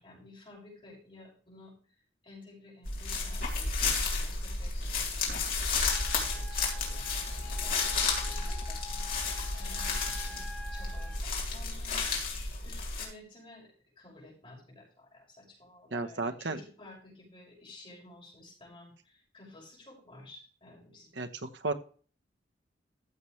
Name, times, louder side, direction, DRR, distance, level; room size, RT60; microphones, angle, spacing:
voice 1, 0.0-1.7 2.2-5.6 6.0-10.5 10.7-12.0 12.6-13.7 14.0-21.2, left 2 dB, 30° left, -4 dB, 6.2 m, -53 dB
sound 1, 2.8-13.0, left 4 dB, 50° left, 3.3 m, -32 dB
Wind instrument woodwind instrument, 5.9-11.2, left 2 dB, 5° left, 1.5 m, -48 dB
voice 2, 15.9-16.6 21.2-21.7, right 3 dB, 80° right, 8 dB, 1.0 m, -33 dB
15.0 x 7.1 x 3.3 m, 0.41 s
head